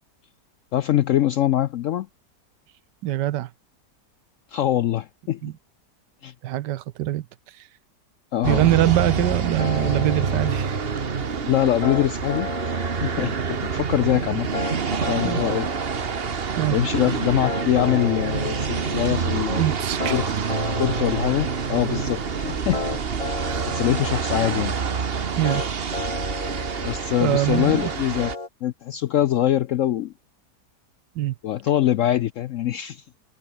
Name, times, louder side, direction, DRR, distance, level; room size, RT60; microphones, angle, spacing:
voice 1, 0.7-2.1 4.5-5.4 6.2-6.3 8.3-8.6 11.5-12.5 13.0-15.7 16.7-19.6 20.1-20.3 20.8-23.0 23.7-24.8 25.1-25.3 26.8-28.3 28.6-30.1 31.4-33.0, left 12 dB, 75° left, 0.7 m, -23 dB
voice 2, 3.0-3.5 5.4-5.5 6.4-7.3 7.6-7.7 8.4-10.8 15.2-15.4 16.6-16.8 19.6-20.2 23.5-23.7 25.4-25.6 27.2-27.9 31.2-31.3, right 14 dB, 90° right, 1.3 m, -23 dB
sound 1, 8.4-28.3, right 6 dB, 40° right, 1.3 m, -27 dB
sound 2, 9.6-28.5, left 3 dB, 20° left, 1.6 m, -34 dB
omnidirectional pair, 1.8 m